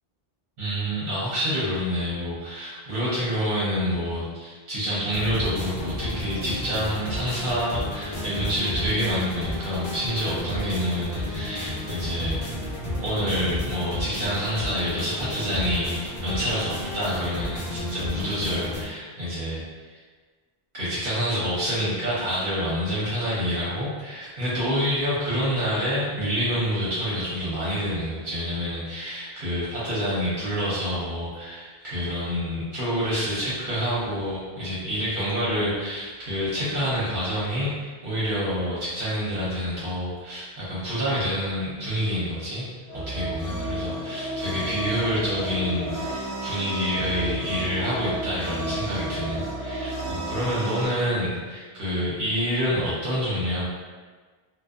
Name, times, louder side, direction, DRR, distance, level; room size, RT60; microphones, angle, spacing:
voice 1, 0.6-12.4 13.0-19.6 20.7-42.6 42.9-53.6, equal, 55° right, -9 dB, 0.9 m, -27 dB
sound 1, 5.1-18.8, left 1 dB, 45° left, 0.7 m, -32 dB
sound 2, 42.9-50.9, right 1 dB, 30° right, 0.7 m, -32 dB
2.6 x 2.2 x 2.4 m, 1.4 s
omnidirectional pair, 1.0 m